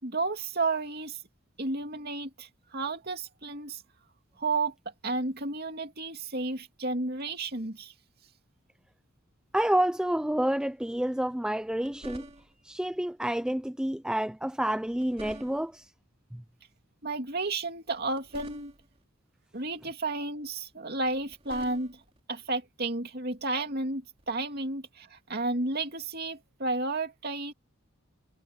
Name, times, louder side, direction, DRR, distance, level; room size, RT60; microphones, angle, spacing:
voice 1, 0.0-1.2 1.6-3.8 4.4-4.7 5.0-7.9 17.0-18.7 19.5-22.0 22.3-27.5, right 3 dB, 45° right, 2.7 m, -32 dB
voice 2, 9.5-12.2 12.6-15.9 16.3-16.4, right 1 dB, 5° right, 0.4 m, -29 dB
sound 1, 11.6-12.7 14.7-15.9 17.9-19.0 21.0-22.2 24.2-24.4, right 1 dB, 25° right, 4.1 m, -48 dB
head